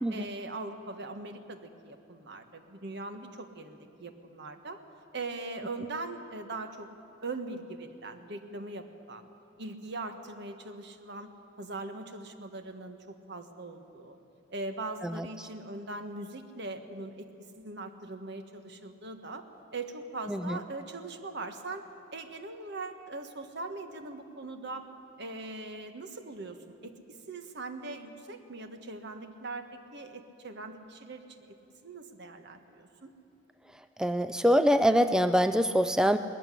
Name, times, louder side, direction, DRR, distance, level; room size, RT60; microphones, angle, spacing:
voice 1, 0.1-4.8 5.1-6.9 7.2-9.3 9.6-11.3 11.6-14.2 14.5-19.4 19.7-21.8 22.1-24.8 25.2-26.6 26.8-31.5 31.8-33.1, right 2 dB, 60° right, 7 dB, 1.4 m, -41 dB
voice 2, 34.0-36.2, equal, 5° right, 10 dB, 0.4 m, -24 dB
19.5 x 14.5 x 9.9 m, 2.9 s
head